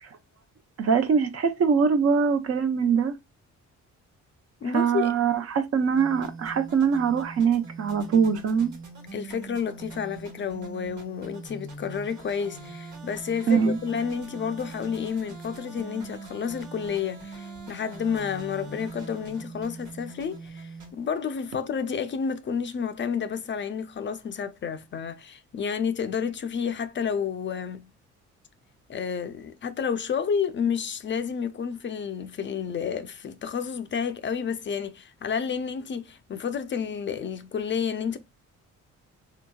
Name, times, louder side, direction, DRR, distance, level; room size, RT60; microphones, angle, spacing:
voice 1, 0.8-3.2 4.7-8.7 13.5-13.8, right 6 dB, 50° right, 0.7 m, -23 dB
voice 2, 4.6-5.1 9.1-27.9 28.9-38.2, left 7 dB, 40° left, 0.4 m, -30 dB
sound 1, 5.9-20.9, right 3 dB, 75° right, 1.4 m, -42 dB
3.5 x 2.8 x 2.2 m
cardioid pair, 90°, 30 cm